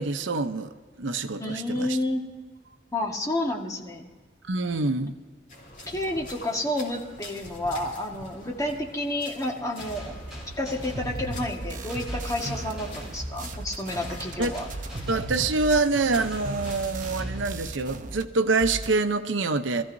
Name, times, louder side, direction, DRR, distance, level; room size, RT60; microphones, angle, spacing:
voice 1, 0.0-2.0 4.5-5.2 14.4-14.6 15.1-19.8, right 3 dB, 85° right, 8 dB, 0.7 m, -26 dB
voice 2, 1.4-2.3 2.9-4.0 5.9-10.1 10.6-14.7, left 1 dB, 20° left, 0 dB, 1.6 m, -30 dB
sound 1, 5.5-17.2, left 2 dB, 45° left, 2.9 m, -46 dB
sound 2, 9.8-18.2, equal, 5° right, 4.5 m, -41 dB
sound 3, 11.0-18.2 18.5-19.0, right 2 dB, 45° right, 0.7 m, -36 dB
24.0 x 14.5 x 2.7 m, 1.4 s
head